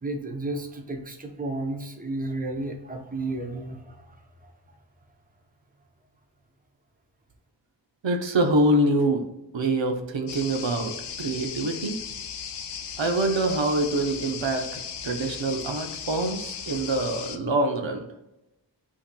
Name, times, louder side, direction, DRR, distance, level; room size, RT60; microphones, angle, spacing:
voice 1, 0.0-4.5, right 2 dB, 20° right, 3 dB, 0.7 m, -33 dB
voice 2, 8.0-9.3 9.5-12.0 13.0-18.1, right 1 dB, 80° right, 4 dB, 0.7 m, -25 dB
sound 1, 10.3-17.4, left 7 dB, 65° left, 0.5 m, -36 dB
8.3 x 2.8 x 2.2 m, 0.94 s
wide cardioid pair, 55°, 44 cm